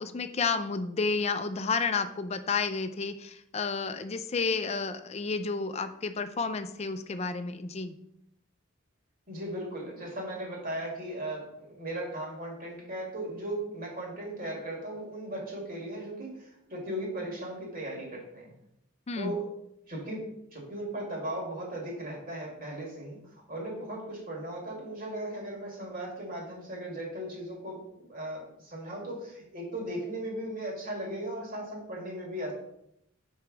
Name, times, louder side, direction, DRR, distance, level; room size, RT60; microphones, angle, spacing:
voice 1, 0.0-7.9 19.1-19.4, left 4 dB, 30° left, 9 dB, 0.4 m, -31 dB
voice 2, 9.3-18.5 19.2-19.4 19.9-20.3 20.5-32.5, right 1 dB, 45° right, -1 dB, 2.2 m, -37 dB
5.0 x 4.6 x 6.0 m, 0.77 s
head